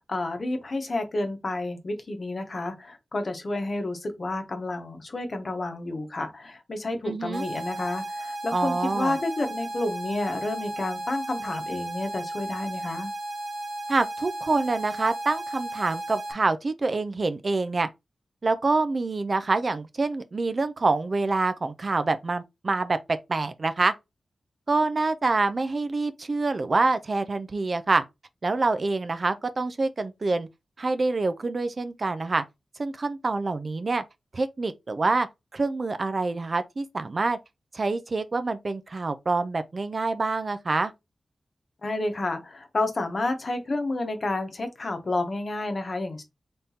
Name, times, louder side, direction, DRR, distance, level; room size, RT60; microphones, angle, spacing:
voice 1, 0.0-13.1 41.8-46.2, left 2 dB, 45° left, 1.0 m, -30 dB
voice 2, 7.1-7.4 8.5-9.2 13.9-17.9 18.4-23.9 24.7-28.0 28.4-30.5 30.8-32.4 32.8-34.0 34.3-35.3 35.5-37.4 37.7-40.9, right 3 dB, 45° right, 0.5 m, -26 dB
sound 1, 7.3-16.3, right 1 dB, 75° right, 1.4 m, -35 dB
3.9 x 3.6 x 2.8 m
wide cardioid pair, 95°, 0 cm